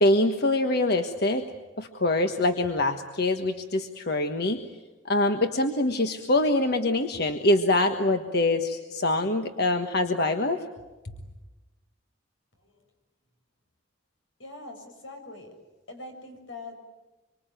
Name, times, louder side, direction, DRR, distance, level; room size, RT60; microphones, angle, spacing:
voice 1, 0.0-1.5 1.8-4.6 5.1-10.6, left 2 dB, 55° left, 6 dB, 1.4 m, -24 dB
voice 2, 14.4-15.5 15.9-16.8, left 2 dB, 90° left, 5 dB, 6.8 m, -42 dB
26.0 x 24.5 x 9.3 m, 1.1 s
head